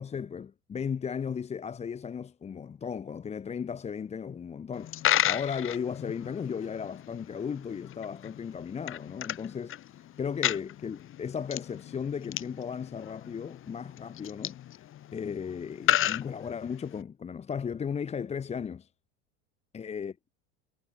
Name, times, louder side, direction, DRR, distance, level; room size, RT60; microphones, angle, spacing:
voice 1, 0.0-9.8 10.2-14.6 15.1-18.9 19.7-20.1, left 7 dB, 15° left, 1.2 m, -35 dB
Coin (dropping), 4.7-17.0, left 12 dB, 35° left, 3.6 m, -34 dB
supercardioid pair, 135°, 37 cm